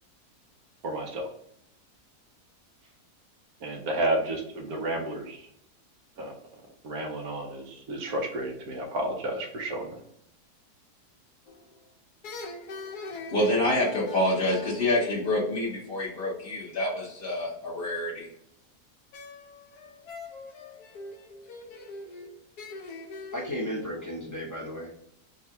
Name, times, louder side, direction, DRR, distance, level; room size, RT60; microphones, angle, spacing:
voice 1, 0.8-1.3 3.6-5.5 6.2-6.3 6.8-10.0, right 1 dB, 75° right, 1 dB, 1.4 m, -31 dB
sound 1, 11.5-11.8 12.2-15.9 19.1-23.5, left 3 dB, 80° left, 1.3 m, -43 dB
voice 2, 13.3-18.3, left 1 dB, 40° left, -6 dB, 1.1 m, -27 dB
voice 3, 23.3-25.0, equal, 15° left, -4 dB, 0.8 m, -34 dB
3.7 x 2.3 x 4.2 m, 0.72 s
omnidirectional pair, 1.7 m